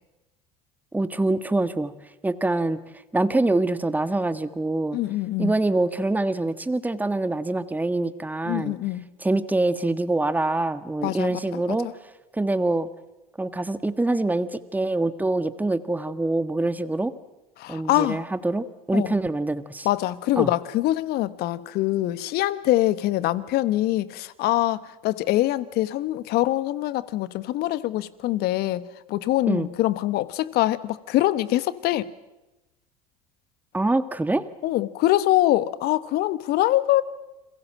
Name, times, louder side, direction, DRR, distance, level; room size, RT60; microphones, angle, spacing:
voice 1, 0.9-1.9 2.2-2.8 3.1-5.0 5.4-8.7 9.2-11.9 12.3-12.9 13.4-17.1 17.7-19.9 20.4-20.5 29.5-29.7 33.7-34.4, right 2 dB, 10° right, 12 dB, 1.5 m, -25 dB
voice 2, 4.9-5.5 8.5-9.1 11.0-11.6 17.6-18.2 18.9-19.1 19.8-32.1 34.6-37.0, left 15 dB, 55° left, 16 dB, 1.4 m, -24 dB
30.0 x 22.0 x 7.6 m, 1.0 s
hypercardioid pair, 75°, 19 cm